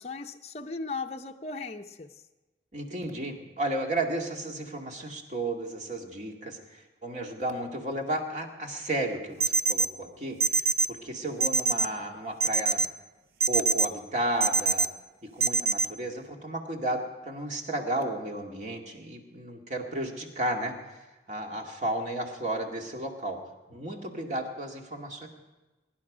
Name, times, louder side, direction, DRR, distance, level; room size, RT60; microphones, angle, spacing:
voice 1, 0.0-2.1, left 4 dB, 35° left, 3 dB, 0.6 m, -37 dB
voice 2, 2.7-12.8 13.5-14.9 15.3-21.0 21.3-23.4 23.7-25.3, right 1 dB, 40° right, 1 dB, 2.1 m, -33 dB
sound 1, 9.4-9.9 10.4-10.9 11.4-11.9 12.4-12.9 13.4-13.9 14.4-14.9 15.4-15.9, right 5 dB, 60° right, 0.5 m, -23 dB
22.5 x 11.0 x 5.0 m, 1.2 s
head